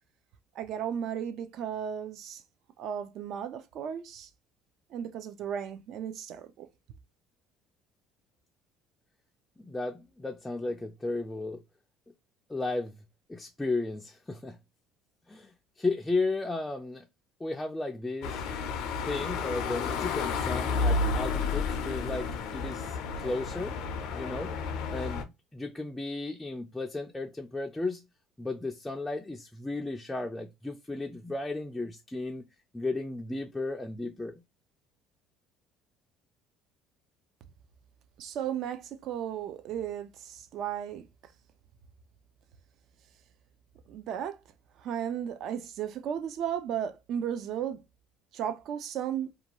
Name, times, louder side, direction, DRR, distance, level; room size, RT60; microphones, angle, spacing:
voice 1, 0.5-2.4 2.8-4.3 4.9-6.7 38.2-41.1 43.9-44.4 44.8-47.8 48.3-49.3, right 9 dB, 55° right, 0.4 m, -35 dB
voice 2, 9.6-11.6 12.5-12.9 13.3-14.6 15.3-17.0 17.4-18.4 19.0-23.8 24.1-24.5 24.9-25.2 25.5-28.0 28.4-32.4 32.7-34.4, left 2 dB, 10° left, 0.3 m, -34 dB
sound 1, 18.2-25.2, left 4 dB, 75° left, 0.4 m, -31 dB
2.5 x 2.2 x 2.8 m
cardioid pair, 130°, 0 cm